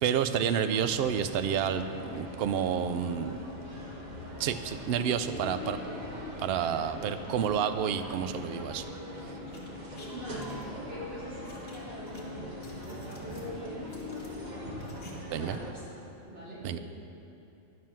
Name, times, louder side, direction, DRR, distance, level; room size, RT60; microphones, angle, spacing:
voice 1, 0.0-1.8 2.1-3.4 4.4-5.8 6.4-8.8 15.3-15.6 16.6-16.8, right 8 dB, 70° right, 10 dB, 0.6 m, -29 dB
sound 1, 0.7-15.7, left 1 dB, 35° right, 1.2 m, -41 dB
sound 2, 9.4-10.6 11.4-12.2 12.5-13.5 13.9-15.1 15.4-15.5, left 2 dB, 45° left, 1.6 m, -55 dB
voice 2, 10.1-14.7 15.3-16.8, equal, 50° right, -8 dB, 3.1 m, -43 dB
10.5 x 7.4 x 5.9 m, 2.8 s
omnidirectional pair, 1.5 m